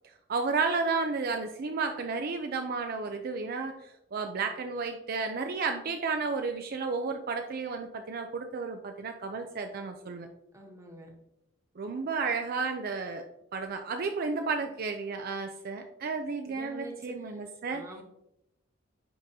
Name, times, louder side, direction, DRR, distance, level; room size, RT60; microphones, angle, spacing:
voice 1, 0.3-10.3 11.8-13.2 13.5-17.8, right 4 dB, 50° right, 5 dB, 0.5 m, -32 dB
voice 2, 10.5-11.1 16.5-17.2 17.7-18.0, right 1 dB, 15° right, 1 dB, 1.2 m, -45 dB
10.0 x 3.7 x 2.8 m, 0.81 s
head